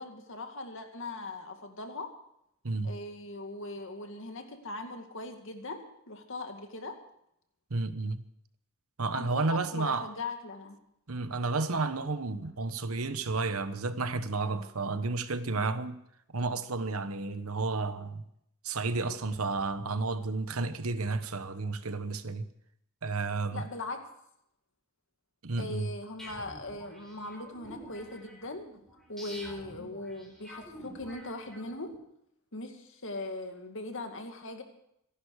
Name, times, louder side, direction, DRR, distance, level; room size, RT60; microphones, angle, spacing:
voice 1, 0.0-2.1 2.8-7.0 9.1-10.8 23.5-24.0 25.6-28.7 29.1-31.9 32.5-34.6, left 2 dB, 60° left, 2.3 m, -40 dB
voice 2, 2.6-3.0 7.7-8.2 9.0-10.1 11.1-16.0 16.3-18.2 18.6-22.4 23.0-23.7 25.4-25.9, right 3 dB, 75° right, 1.1 m, -32 dB
sound 1, 26.2-32.0, equal, ahead, 4.9 m, -48 dB
26.0 x 11.5 x 4.9 m
head